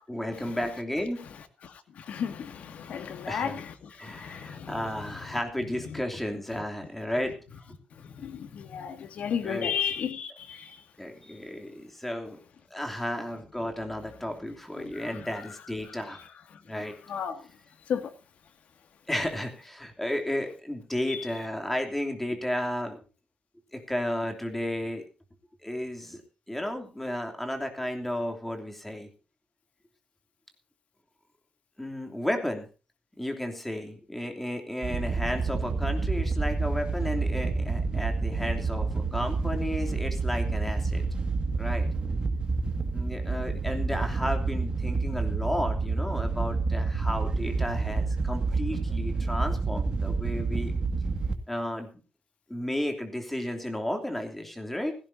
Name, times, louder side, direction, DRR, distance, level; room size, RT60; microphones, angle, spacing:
voice 1, 0.1-1.3 3.3-3.6 4.0-7.6 9.4-9.7 11.0-12.4 12.7-16.2 16.7-16.9 19.1-23.0 23.7-25.0 25.6-26.2 26.5-29.1 31.8-32.7 33.2-41.0 41.6-41.9 42.9-50.7 51.5-51.9 52.5-55.0, left 1 dB, 5° left, 3.0 m, -33 dB
voice 2, 1.6-3.7 4.0-5.1 8.0-10.8 14.8-15.3 16.1-16.2 17.1-17.4 17.9-18.1 21.1-21.3, left 8 dB, 85° left, 2.1 m, -34 dB
Wind / Boat Water vehicle, 34.8-51.3, right 3 dB, 40° right, 2.0 m, -29 dB
17.0 x 16.5 x 2.7 m
wide cardioid pair, 150°, 2 cm